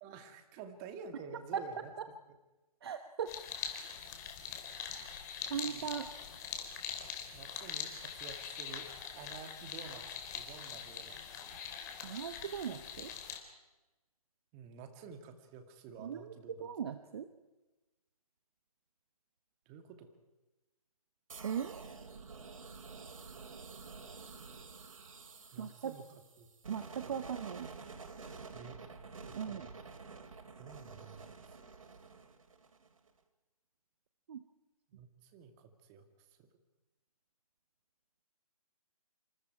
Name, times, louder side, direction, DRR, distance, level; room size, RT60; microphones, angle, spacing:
voice 1, 0.0-1.9 2.3-2.4 5.6-5.9 7.3-8.9 9.1-10.0 10.3-11.6 14.5-16.7 19.7-20.1 25.5-26.1 26.4-26.5 27.0-27.3 28.5-28.8 29.3-29.7 30.6-31.6 34.9-36.1 36.4-36.5, right 6 dB, 20° right, 7 dB, 2.2 m, -51 dB
voice 2, 2.8-3.3 5.1-5.2 5.5-6.1 12.0-13.1 16.0-16.3 16.6-17.3 21.4-21.8 25.6-25.9 26.7-27.7 29.4-29.7 34.3-34.4, right 8 dB, 40° right, 9 dB, 1.1 m, -38 dB
sound 1, 3.3-13.4, left 7 dB, 30° left, 3.3 m, -43 dB
sound 2, 21.3-33.1, right 4 dB, 60° right, 2.8 m, -50 dB
27.0 x 27.0 x 4.8 m, 1.1 s
figure-of-eight pair, 145°, 19 cm